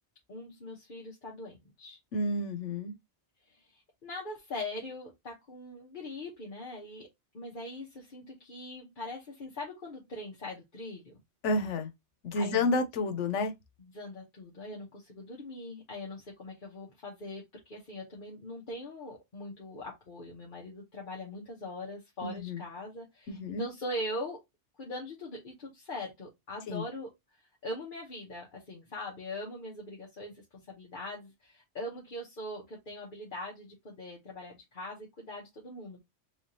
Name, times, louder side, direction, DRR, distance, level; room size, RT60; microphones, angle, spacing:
voice 1, 0.3-2.0 3.5-7.1 7.3-11.1 12.4-12.7 13.8-24.4 24.8-27.1 27.4-36.0, left 1 dB, 50° left, 1.1 m, -41 dB
voice 2, 2.1-2.9 11.4-11.9 12.2-13.5 22.2-22.6 23.3-23.6 26.7-26.8, left 2 dB, 90° left, 1.1 m, -30 dB
3.6 x 3.4 x 2.7 m
omnidirectional pair, 1.2 m